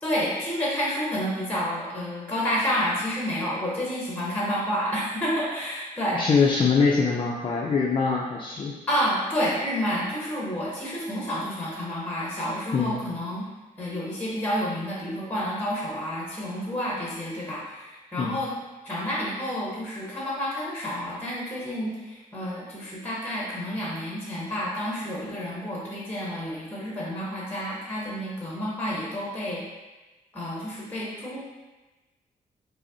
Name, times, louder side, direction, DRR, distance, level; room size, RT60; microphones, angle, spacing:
voice 1, 0.0-6.2 8.9-13.4 13.8-18.5 18.8-29.6 30.3-31.4, equal, 10° left, -5 dB, 0.8 m, -29 dB
voice 2, 6.1-8.7 12.7-13.0 18.2-18.4, left 5 dB, 35° left, -3 dB, 0.4 m, -23 dB
4.9 x 2.0 x 2.6 m, 1.2 s
cardioid pair, 95°, 15 cm